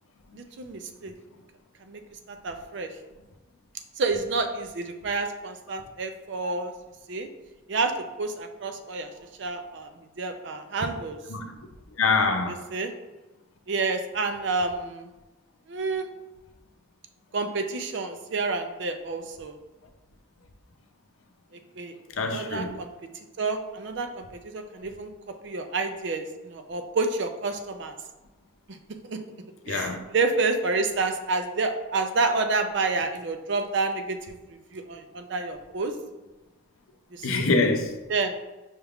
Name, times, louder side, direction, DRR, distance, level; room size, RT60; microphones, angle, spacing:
voice 1, 0.3-1.1 1.9-2.0 2.3-2.9 4.0-6.7 7.1-7.3 7.7-7.9 8.2-9.1 9.4-9.9 10.2-11.2 12.7-12.9 13.7-15.1 15.7-16.1 17.3-19.5 21.8-21.9 22.3-22.9 23.4-25.1 25.4-28.0 28.7-28.8 29.1-29.2 29.7-34.4 34.7-35.9 37.1-37.5 38.1-38.4, right 3 dB, 60° right, 0.4 m, -29 dB
voice 2, 12.0-12.6 22.2-22.8 29.7-30.1 37.2-38.0, left 3 dB, 80° left, 0.5 m, -25 dB
5.6 x 2.3 x 3.5 m
head